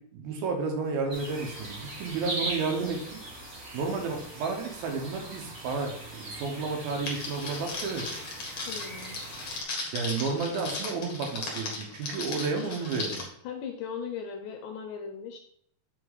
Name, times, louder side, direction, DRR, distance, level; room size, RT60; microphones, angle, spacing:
voice 1, 0.0-3.2 3.7-8.2 9.9-13.2, right 4 dB, 75° right, 3 dB, 2.8 m, -32 dB
sound 1, 1.1-9.6, right 2 dB, 55° right, 0.9 m, -40 dB
Crackle, 7.1-13.2, left 3 dB, 45° left, 1.6 m, -37 dB
voice 2, 8.7-9.2 13.4-15.4, left 6 dB, 75° left, 4 dB, 2.0 m, -38 dB
7.8 x 4.1 x 4.0 m, 0.68 s
omnidirectional pair, 4.4 m